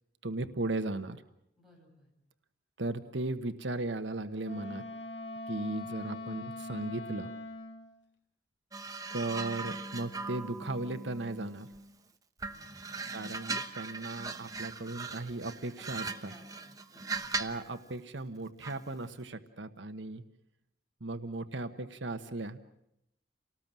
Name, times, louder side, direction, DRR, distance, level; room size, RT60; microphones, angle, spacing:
voice 1, 0.2-1.2 2.8-4.8 5.5-7.3 9.1-11.7 13.1-16.3 17.4-20.2 21.0-22.6, right 2 dB, 80° right, 9 dB, 1.2 m, -36 dB
voice 2, 1.6-2.1 12.4-13.1 15.8-17.4, equal, ahead, -2 dB, 7.2 m, -60 dB
Wind instrument woodwind instrument, 4.4-7.9, left 1 dB, 80° left, 2.3 m, -42 dB
sound 1, 8.7-11.9 12.4-17.7 18.6-18.9, right 4 dB, 20° right, 1.0 m, -39 dB
29.0 x 19.0 x 7.5 m, 0.80 s
head